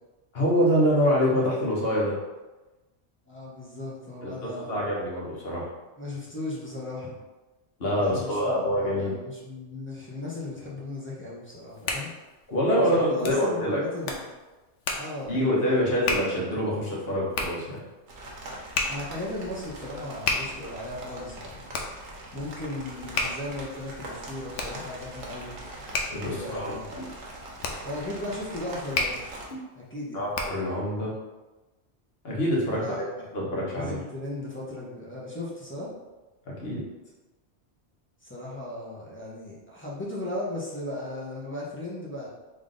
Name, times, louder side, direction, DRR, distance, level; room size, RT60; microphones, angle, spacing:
voice 1, 0.3-2.2 4.2-4.3 4.7-5.7 7.8-9.1 12.5-13.8 15.3-17.8 26.1-27.1 30.1-31.1 32.2-33.0 33.3-34.0 36.5-36.8, equal, 60° left, -5 dB, 1.2 m, -25 dB
voice 2, 3.3-4.7 6.0-7.1 8.0-12.2 12.8-14.2 14.9-15.8 18.9-21.7 22.3-25.5 26.2-27.0 27.8-29.2 29.8-30.2 32.8-33.3 33.7-35.9 38.2-42.3, left 1 dB, 10° left, -5 dB, 0.7 m, -36 dB
Hands, 11.4-30.8, left 3 dB, 90° left, 0.9 m, -34 dB
sound 1, 18.1-29.5, right 1 dB, 75° right, 1.1 m, -42 dB
3.6 x 2.6 x 3.7 m, 1.1 s
omnidirectional pair, 1.2 m